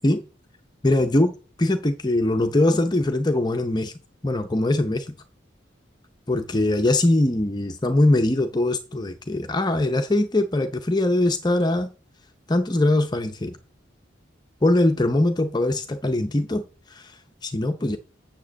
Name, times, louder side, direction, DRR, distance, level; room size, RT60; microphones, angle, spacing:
voice 1, 0.8-1.3 1.6-3.9 4.2-5.2 6.3-11.9 12.5-13.6 14.6-16.6 16.9-18.0, left 1 dB, 20° left, 0.6 m, -22 dB
7.4 x 7.4 x 7.2 m
head